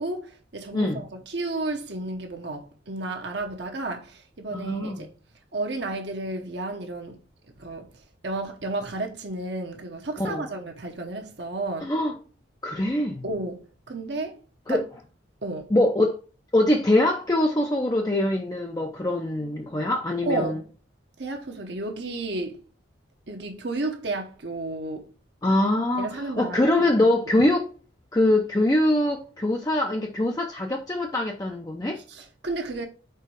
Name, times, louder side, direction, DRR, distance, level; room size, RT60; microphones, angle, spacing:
voice 1, 0.0-5.1 5.5-7.2 7.6-7.9 8.2-11.9 13.2-14.4 14.7-14.8 15.4-15.7 20.3-20.6 21.2-22.6 23.3-25.1 26.0-27.1 32.1-32.8, right 2 dB, 60° right, 1.0 m, -32 dB
voice 2, 4.5-5.0 10.2-10.4 11.8-12.2 12.6-13.2 14.7-14.8 15.7-16.2 16.5-20.6 25.4-27.7 28.1-32.0, left 1 dB, 20° left, 0.5 m, -23 dB
4.5 x 4.4 x 4.7 m
head